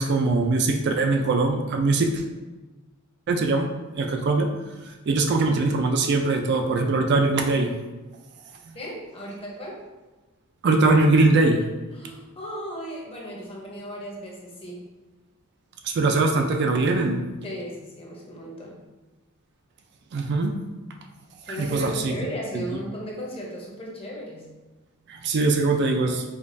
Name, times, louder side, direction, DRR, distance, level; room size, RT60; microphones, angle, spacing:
voice 1, 0.0-2.2 3.3-3.7 3.9-4.5 5.1-7.7 10.6-11.6 15.8-17.2 20.1-20.5 21.6-22.1 22.5-22.6 25.1-26.2, right 3 dB, 50° right, 4 dB, 0.4 m, -21 dB
voice 2, 8.7-9.8 11.9-14.9 17.4-18.8 21.5-24.5, equal, 25° left, -3 dB, 0.8 m, -36 dB
5.0 x 2.3 x 2.6 m, 1.2 s
head